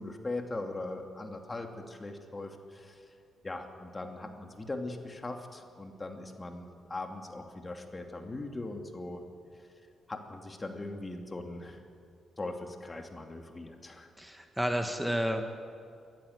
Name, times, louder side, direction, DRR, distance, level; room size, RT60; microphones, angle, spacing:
voice 1, 0.0-3.1 3.4-9.2 10.1-11.8 12.4-14.1, left 2 dB, 30° left, 4 dB, 2.7 m, -40 dB
voice 2, 14.2-15.4, equal, 5° right, 5 dB, 1.7 m, -31 dB
23.0 x 14.0 x 8.3 m, 2.5 s
hypercardioid pair, 40°, 0 cm